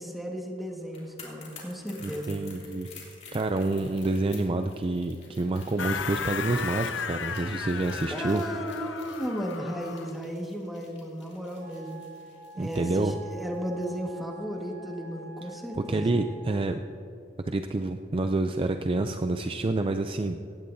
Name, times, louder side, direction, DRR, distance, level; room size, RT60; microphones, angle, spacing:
voice 1, 0.0-2.4 8.1-12.0 12.6-16.2, equal, ahead, -1 dB, 1.6 m, -35 dB
sound 1, 0.8-14.0 14.3-14.4, left 5 dB, 35° left, 3.0 m, -51 dB
voice 2, 2.0-2.9 3.3-8.4 12.6-13.2 15.9-16.8 17.5-20.4, right 2 dB, 30° right, 6 dB, 0.4 m, -28 dB
sound 2, 5.8-10.2, left 6 dB, 70° left, 0.6 m, -35 dB
Wind instrument woodwind instrument, 11.6-16.8, right 4 dB, 65° right, 3.0 m, -47 dB
18.5 x 16.0 x 2.7 m, 2.7 s
head